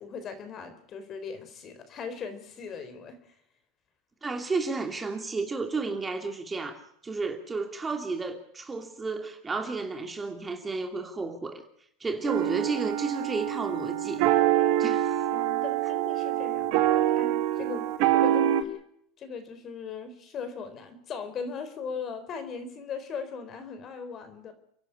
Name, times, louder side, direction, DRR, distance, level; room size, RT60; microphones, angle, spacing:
voice 1, 0.0-3.3 14.9-15.0 15.3-17.9 18.1-18.7 19.2-24.5, left 5 dB, 35° left, 4.1 m, -39 dB
voice 2, 4.2-11.6 12.0-14.2 14.8-15.2, right 3 dB, 15° right, 2.8 m, -32 dB
sound 1, 12.3-18.6, right 12 dB, 60° right, 2.2 m, -25 dB
29.5 x 11.5 x 8.7 m
supercardioid pair, 120°, 0 cm